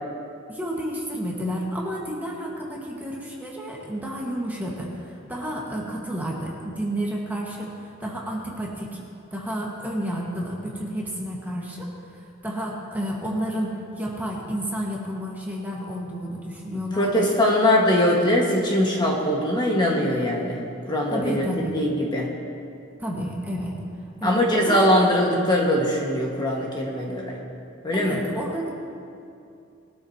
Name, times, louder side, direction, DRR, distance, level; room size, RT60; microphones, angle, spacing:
voice 1, 0.5-9.0 9.3-17.3 21.1-21.8 23.0-23.8 24.2-24.9 27.9-28.7, equal, 10° right, -3 dB, 1.6 m, -31 dB
voice 2, 17.0-20.6 20.9-22.3 24.2-27.4 27.8-28.2, left 1 dB, 20° left, -2 dB, 1.7 m, -21 dB
21.5 x 12.5 x 2.9 m, 2.5 s
head